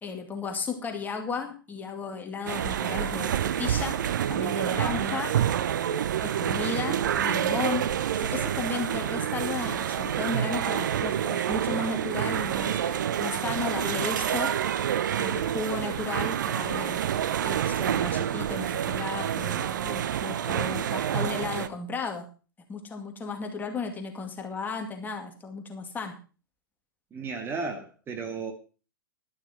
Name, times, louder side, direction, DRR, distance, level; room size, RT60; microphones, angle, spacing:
voice 1, 0.0-4.0 4.3-5.3 6.2-7.8 8.2-14.5 15.2-17.0 17.4-22.3 22.7-26.2, left 4 dB, 15° left, 3 dB, 2.3 m, -34 dB
sound 1, 2.5-21.7, right 9 dB, 60° right, 0.9 m, -28 dB
voice 2, 4.9-5.2 27.1-28.5, right 4 dB, 20° right, 4 dB, 2.1 m, -34 dB
12.0 x 11.5 x 4.4 m, 0.35 s
figure-of-eight pair, 105°, 12 cm